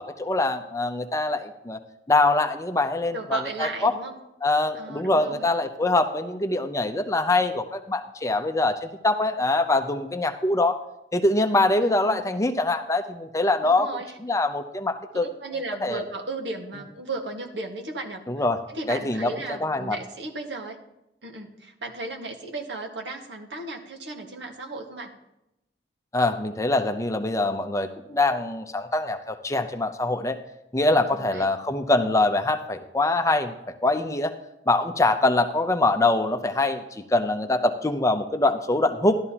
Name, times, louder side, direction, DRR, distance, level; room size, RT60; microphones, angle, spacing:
voice 1, 0.0-1.8 2.1-3.9 4.4-10.8 11.1-13.9 14.2-15.3 15.8-16.0 18.3-18.6 18.9-19.3 19.6-20.0 26.1-30.4 30.7-34.3 34.7-39.2, left 2 dB, 15° left, 6 dB, 0.6 m, -24 dB
voice 2, 3.1-4.2 4.7-5.5 11.8-12.3 13.6-14.1 15.1-18.5 18.7-20.8 21.2-25.1 31.1-31.5, right 2 dB, 80° right, 1 dB, 1.6 m, -35 dB
12.5 x 12.0 x 2.9 m, 0.86 s
head